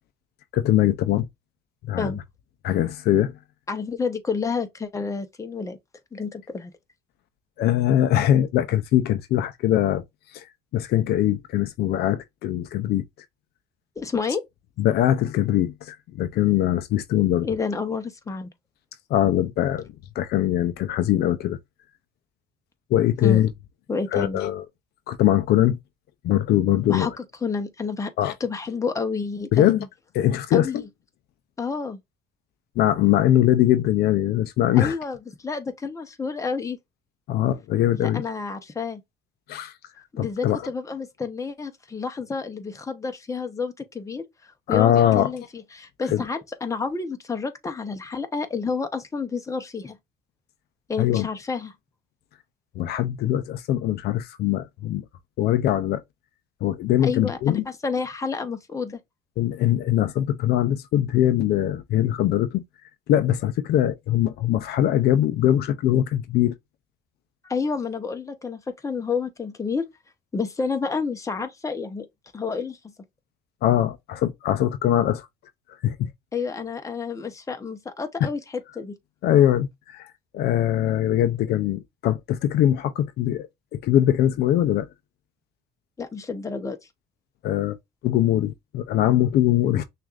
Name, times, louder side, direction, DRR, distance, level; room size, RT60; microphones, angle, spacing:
voice 1, 0.5-1.3 1.9-2.2 2.6-3.3 7.6-10.0 10.3-10.5 10.7-13.0 14.3-14.4 14.8-17.6 19.1-19.8 20.2-21.6 22.9-23.5 24.1-24.7 25.1-25.8 26.2-27.2 28.2-28.4 29.5-29.9 30.1-30.8 32.8-35.0 37.3-38.2 39.5-39.7 40.2-40.7 44.7-45.3 46.0-46.3 51.0-51.3 52.8-55.0 55.4-56.0 56.6-57.7 59.4-62.6 63.1-66.5 73.6-75.3 75.8-76.1 78.2-78.3 78.7-78.8 79.2-83.5 83.7-84.9 87.4-87.8 88.0-89.8, left 12 dB, 70° left, 0.5 m, -22 dB
voice 2, 3.7-5.8 6.1-6.7 14.0-14.4 17.4-18.5 23.2-23.4 23.9-24.4 26.9-28.1 28.4-29.9 30.5-30.8 31.6-32.0 34.7-35.2 35.4-36.8 37.9-39.0 40.1-44.2 44.7-50.0 50.9-51.7 57.0-59.0 67.4-69.9 70.3-72.1 72.3-72.9 76.3-79.0 86.0-86.8, left 5 dB, 20° left, 0.8 m, -29 dB
6.1 x 2.5 x 2.4 m
cardioid pair, 110°, 17 cm